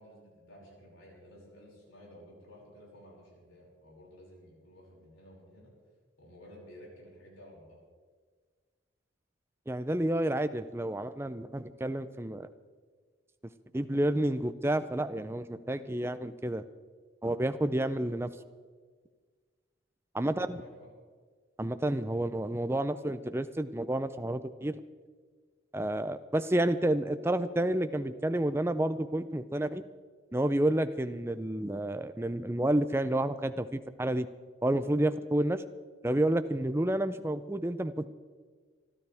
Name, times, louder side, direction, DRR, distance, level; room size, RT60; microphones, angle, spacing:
voice 1, 0.0-5.7 6.2-7.8 20.2-20.9, equal, 90° left, -4 dB, 6.0 m, -53 dB
voice 2, 9.7-12.5 13.7-16.6 17.2-18.3 20.1-20.6 21.6-24.8 25.7-29.8 30.3-34.3 34.6-35.6 36.0-38.1, right 1 dB, 10° right, 11 dB, 0.5 m, -30 dB
27.0 x 12.5 x 3.5 m, 1.5 s
head